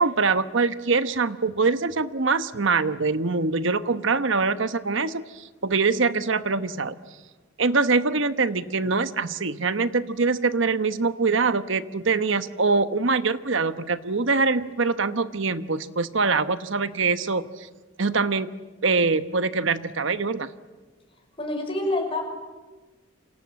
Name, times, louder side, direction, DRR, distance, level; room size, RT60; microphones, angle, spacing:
voice 1, 0.0-6.9 7.6-17.7 18.0-18.5 18.8-20.5, right 4 dB, 70° right, 12 dB, 1.1 m, -24 dB
voice 2, 21.4-22.2, left 2 dB, 25° left, 3 dB, 5.9 m, -26 dB
28.5 x 26.5 x 7.6 m, 1.3 s
head